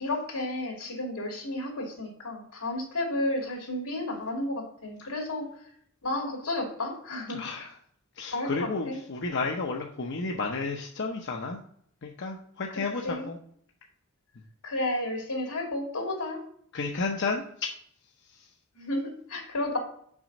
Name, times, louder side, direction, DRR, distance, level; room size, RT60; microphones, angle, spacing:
voice 1, 0.0-5.5 6.0-7.5 8.3-9.0 13.0-13.3 14.6-16.4 18.7-19.8, left 1 dB, 85° left, 1 dB, 2.5 m, -32 dB
voice 2, 7.3-7.7 8.2-11.6 12.0-13.4 16.7-17.7, left 3 dB, 55° left, 1 dB, 0.7 m, -32 dB
6.1 x 5.0 x 5.3 m, 0.65 s
head